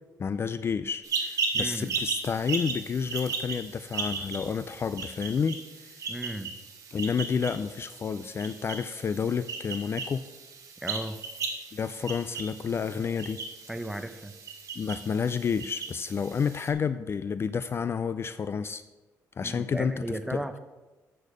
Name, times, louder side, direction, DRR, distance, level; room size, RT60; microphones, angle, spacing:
voice 1, 0.2-6.0 6.9-10.2 11.7-13.4 14.8-18.8 19.4-20.4, left 6 dB, 40° left, 12 dB, 0.3 m, -30 dB
sound 1, 1.0-16.7, right 4 dB, 55° right, 1.8 m, -36 dB
voice 2, 1.5-2.0 6.1-6.5 10.8-11.2 13.7-14.3 19.4-20.6, right 1 dB, 5° right, 9 dB, 0.7 m, -35 dB
8.4 x 6.5 x 5.1 m, 1.2 s
cardioid pair, 95°, 7 cm